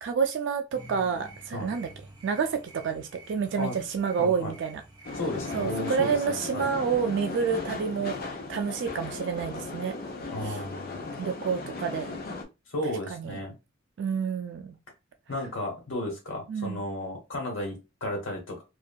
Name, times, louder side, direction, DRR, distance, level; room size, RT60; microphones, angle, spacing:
voice 1, 0.0-1.9 2.2-4.8 5.5-8.2 8.5-9.9 10.4-10.6 11.2-12.2 13.1-13.4 14.0-14.8 16.5-16.8, right 6 dB, 65° right, 0.3 m, -29 dB
sound 1, 0.7-6.2, right 1 dB, 20° right, 0.8 m, -50 dB
voice 2, 4.2-4.5 5.1-6.7 10.3-11.0 12.7-13.5 15.3-18.6, left 1 dB, 85° left, 1.1 m, -34 dB
sound 2, 5.0-12.4, left 3 dB, 50° left, 0.6 m, -37 dB
2.6 x 2.4 x 2.2 m
head